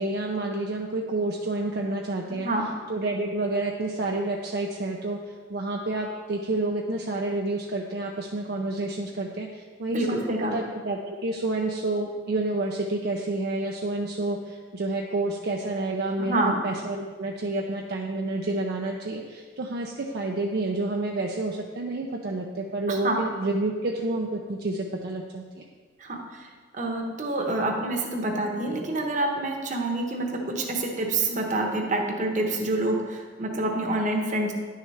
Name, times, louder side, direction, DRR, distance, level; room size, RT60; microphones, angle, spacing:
voice 1, 0.0-2.5 2.9-5.2 5.5-10.2 10.5-25.6, right 2 dB, 60° right, 0 dB, 0.6 m, -29 dB
voice 2, 9.9-10.5 16.2-16.6 22.9-23.2 26.0-26.4 26.7-34.5, right 2 dB, 45° right, 2 dB, 1.0 m, -27 dB
10.0 x 6.5 x 3.3 m, 1.5 s
head